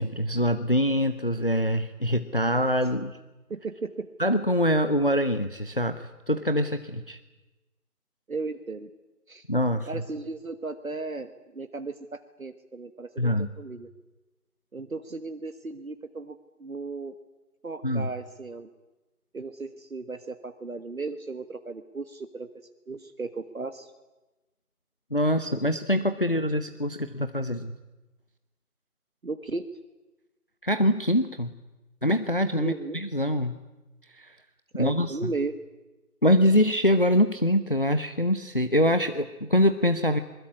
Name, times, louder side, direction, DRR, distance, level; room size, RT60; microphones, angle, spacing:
voice 1, 0.0-3.2 4.2-7.2 9.5-10.0 13.2-13.5 17.8-18.1 25.1-27.7 30.6-31.5 32.0-33.6 34.1-34.4 34.8-35.3 36.2-40.2, equal, 35° left, 10 dB, 0.9 m, -24 dB
voice 2, 3.5-4.1 8.3-8.9 9.3-9.4 9.9-13.3 13.6-13.9 14.7-17.1 17.6-18.7 19.3-22.5 22.9-23.9 29.2-29.8 32.6-33.0 34.7-35.5, right 3 dB, 65° right, 9 dB, 1.6 m, -35 dB
22.5 x 21.0 x 9.7 m, 1.1 s
figure-of-eight pair, 175°, 46 cm